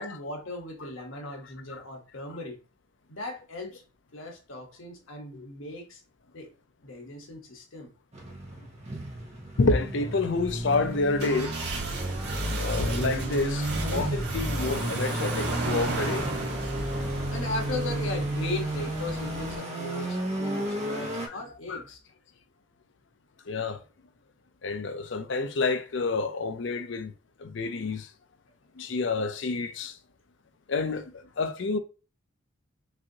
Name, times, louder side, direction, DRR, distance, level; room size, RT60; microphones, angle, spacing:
voice 1, 0.0-2.6 3.1-3.8 4.1-6.0 6.3-6.5 6.8-7.9 17.3-22.0, left 2 dB, 85° left, 1.3 m, -37 dB
sound 1, 8.1-21.3, right 1 dB, 35° right, 0.9 m, -33 dB
voice 2, 9.6-11.6 12.6-16.2 21.3-21.4 21.7-21.8 23.5-23.8 24.6-27.1 27.4-28.1 28.8-29.9 30.7-31.8, left 3 dB, 65° left, 0.5 m, -28 dB
sound 2, 10.3-19.6, right 1 dB, 55° right, 1.4 m, -33 dB
6.0 x 2.7 x 2.8 m
head